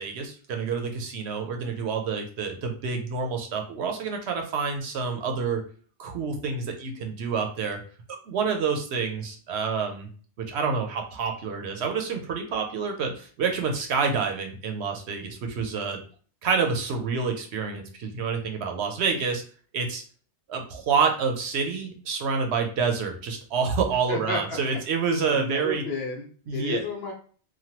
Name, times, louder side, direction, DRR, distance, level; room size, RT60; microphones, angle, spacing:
voice 1, 0.0-5.6 6.0-7.8 8.3-10.1 10.5-16.0 16.4-19.4 19.7-20.0 20.5-25.8 26.5-26.8, right 5 dB, 70° right, 4 dB, 0.9 m, -28 dB
voice 2, 24.1-24.6 25.2-27.1, left 3 dB, 60° left, 0 dB, 1.0 m, -32 dB
3.1 x 2.2 x 2.8 m, 0.42 s
omnidirectional pair, 1.2 m